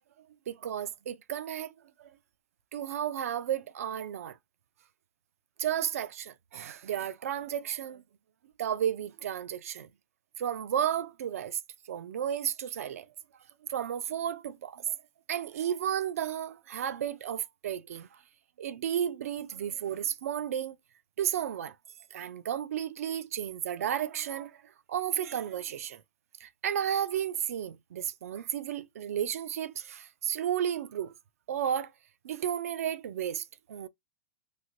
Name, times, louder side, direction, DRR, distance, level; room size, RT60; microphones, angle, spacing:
voice 1, 0.5-1.7 2.0-2.1 2.7-4.4 5.6-8.0 8.6-9.9 10.4-11.6 11.9-13.1 13.7-14.9 15.3-18.1 18.6-20.8 21.2-21.7 22.1-24.6 24.9-26.0 26.4-31.1 31.5-31.9 32.2-33.9, right 9 dB, 80° right, 0.4 m, -33 dB
3.2 x 2.4 x 2.5 m
supercardioid pair, 175°, 8 cm